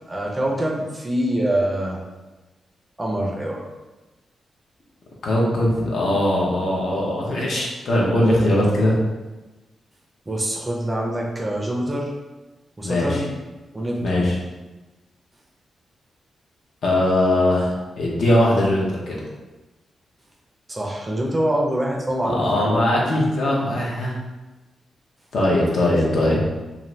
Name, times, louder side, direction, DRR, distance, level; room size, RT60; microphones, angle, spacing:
voice 1, 0.1-2.0 3.0-3.6 10.3-12.1 12.8-13.3 13.7-14.3 20.7-22.8 25.8-26.0, right 1 dB, 15° right, -1 dB, 0.5 m, -25 dB
voice 2, 5.2-9.0 12.8-13.2 14.0-14.4 16.8-19.2 22.2-24.1 25.3-26.4, left 1 dB, 65° left, -4 dB, 0.7 m, -20 dB
2.6 x 2.5 x 3.1 m, 1.1 s
wide cardioid pair, 140°, 0 cm